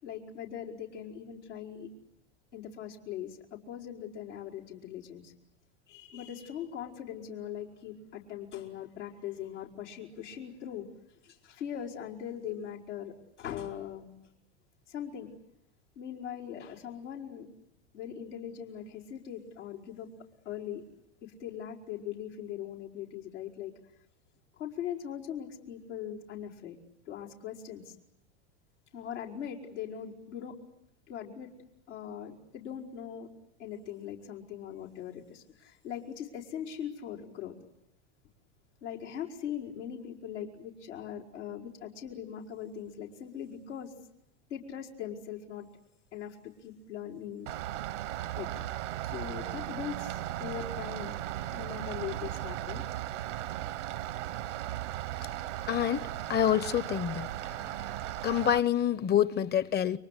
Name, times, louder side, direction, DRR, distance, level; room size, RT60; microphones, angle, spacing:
voice 1, 0.0-1.9 2.5-5.3 5.9-10.9 11.2-14.1 14.9-15.3 16.0-17.5 17.9-20.1 20.5-20.8 21.2-23.7 24.6-26.8 27.1-28.0 28.9-30.5 31.1-31.5 31.9-33.3 33.6-37.6 38.8-43.9 44.5-45.7 46.1-47.5 48.4-48.6 49.0-51.2 51.5-52.8, left 9 dB, 85° left, 5.0 m, -40 dB
Rain, 47.5-58.6, right 13 dB, 85° right, 1.4 m, -37 dB
voice 2, 55.7-57.3 58.2-60.0, left 10 dB, 30° left, 1.0 m, -27 dB
30.0 x 24.0 x 8.3 m
hypercardioid pair, 105°, 35 cm